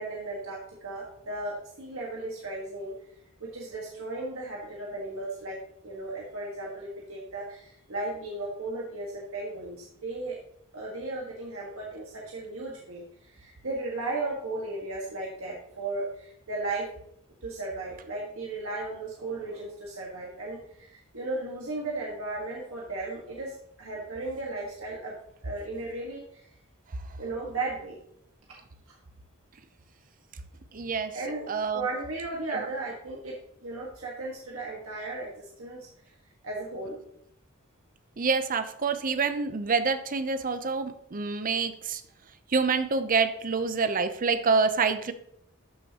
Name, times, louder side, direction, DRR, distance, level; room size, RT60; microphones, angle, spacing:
voice 1, 0.0-2.9 3.4-5.6 5.8-10.4 10.7-16.9 17.4-25.1 25.4-26.4 27.2-28.0 28.9-29.0 31.1-31.5 31.7-33.4 33.6-35.9 36.4-37.0, right 2 dB, 75° right, -3 dB, 1.6 m, -35 dB
voice 2, 30.7-31.1 31.5-31.9 32.5-32.7 38.2-42.0 42.5-45.1, right 4 dB, 40° right, 10 dB, 0.6 m, -27 dB
12.5 x 6.2 x 2.9 m, 0.72 s
head